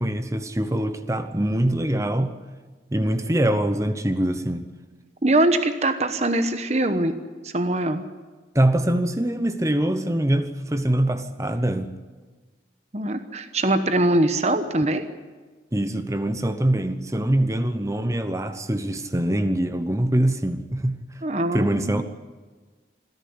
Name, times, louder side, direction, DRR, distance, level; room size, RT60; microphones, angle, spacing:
voice 1, 0.0-2.3 2.9-4.7 8.5-11.9 15.7-20.9 21.5-22.0, right 1 dB, 15° right, 10 dB, 0.9 m, -23 dB
voice 2, 5.2-7.1 7.4-8.0 12.9-15.0 21.2-22.0, right 1 dB, 35° right, 9 dB, 1.1 m, -22 dB
26.5 x 11.0 x 9.5 m, 1.4 s
head